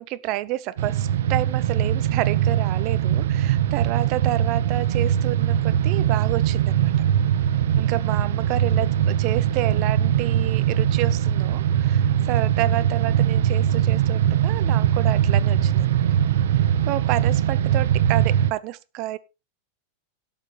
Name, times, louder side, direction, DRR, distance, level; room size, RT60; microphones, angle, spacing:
voice 1, 0.0-6.9 7.8-16.1 16.9-19.2, right 16 dB, 50° right, 0.8 m, -29 dB
sound 1, 0.8-18.5, right 10 dB, 80° right, 0.7 m, -21 dB
17.5 x 7.0 x 3.2 m
hypercardioid pair, 120°, 0 cm